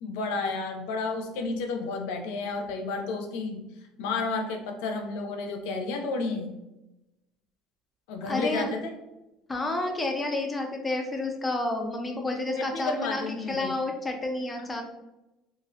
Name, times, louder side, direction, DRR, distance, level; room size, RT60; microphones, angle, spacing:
voice 1, 0.0-3.6 4.0-6.5 8.1-9.0 12.6-13.8, left 3 dB, 85° left, 4 dB, 0.4 m, -31 dB
voice 2, 8.3-8.7 9.5-13.2 13.5-14.8, left 2 dB, 10° left, 3 dB, 0.3 m, -30 dB
2.4 x 2.0 x 2.6 m, 0.96 s
cardioid pair, 170°, 0 cm